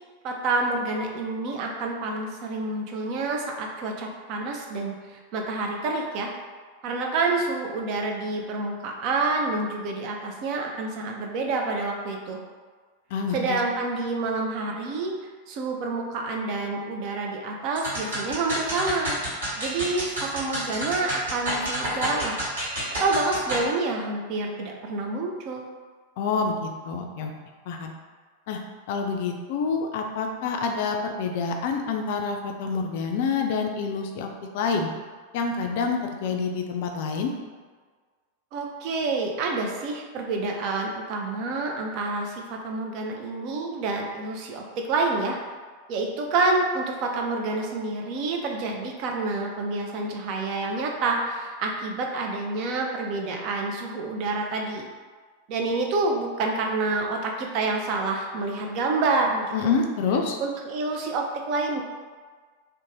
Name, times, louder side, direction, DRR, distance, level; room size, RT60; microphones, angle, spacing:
voice 1, 0.2-6.3 6.8-12.4 13.3-15.1 15.5-19.2 19.6-22.4 23.0-25.7 38.5-45.4 45.9-54.9 55.5-59.7 60.4-61.8, right 3 dB, 40° right, 1 dB, 0.4 m, -28 dB
voice 2, 13.1-13.6 26.2-27.3 27.7-27.9 28.5-28.6 28.9-34.3 34.5-34.9 35.3-37.3 59.5-60.4, left 5 dB, 50° left, 3 dB, 0.3 m, -27 dB
sound 1, 17.8-23.7, right 1 dB, 65° right, 1.3 m, -30 dB
2.5 x 2.1 x 3.0 m, 1.5 s
figure-of-eight pair, 90°, 0 cm